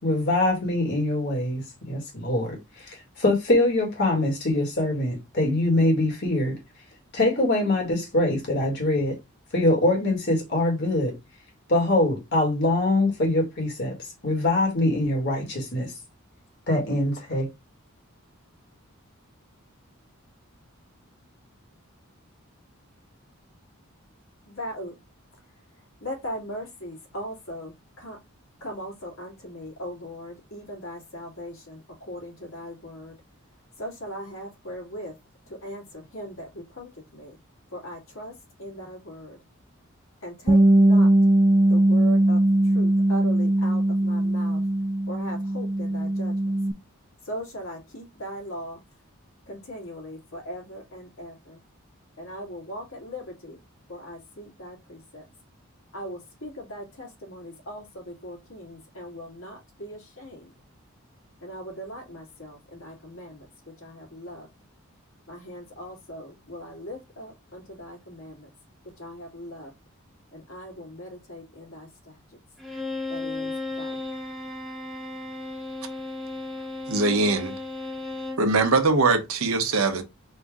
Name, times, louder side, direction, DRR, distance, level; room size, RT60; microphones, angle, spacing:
voice 1, 0.0-6.6 7.1-9.1 9.5-11.1 11.7-13.9 14.2-15.9 16.7-17.5, left 1 dB, 50° left, 2.0 m, -23 dB
voice 2, 24.5-24.9 26.0-28.2 28.6-33.2 33.8-35.1 35.5-37.4 37.7-38.3 38.6-39.4 40.2-41.1 41.7-44.6 45.1-46.5 47.2-48.8 49.5-51.6 52.2-53.6 53.9-55.2 55.9-60.5 61.4-63.5 63.8-64.5 65.3-68.5 69.0-69.7 70.3-72.4 73.1-74.0, equal, 70° left, 2.3 m, -39 dB
Bass guitar, 40.5-46.7, right 1 dB, 25° right, 0.4 m, -20 dB
Bowed string instrument, 72.6-78.5, left 2 dB, ahead, 1.3 m, -34 dB
voice 3, 76.9-77.5 78.4-80.0, right 3 dB, 75° right, 1.0 m, -22 dB
4.3 x 2.7 x 3.5 m
head